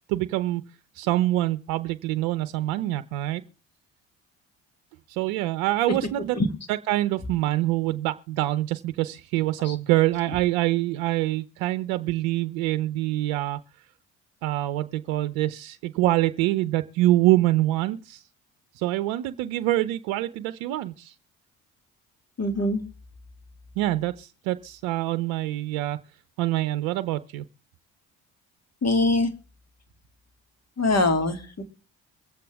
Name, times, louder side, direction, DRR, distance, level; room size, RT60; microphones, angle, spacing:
voice 1, 0.1-0.6 0.9-3.4 5.1-6.4 6.7-13.6 14.4-18.2 18.8-21.1 23.8-26.0 26.4-27.4, right 16 dB, 75° right, 0.7 m, -25 dB
voice 2, 22.4-22.8 28.8-29.3 30.8-31.6, left 2 dB, 40° left, 2.7 m, -23 dB
23.5 x 8.3 x 3.5 m
hypercardioid pair, 50°, 39 cm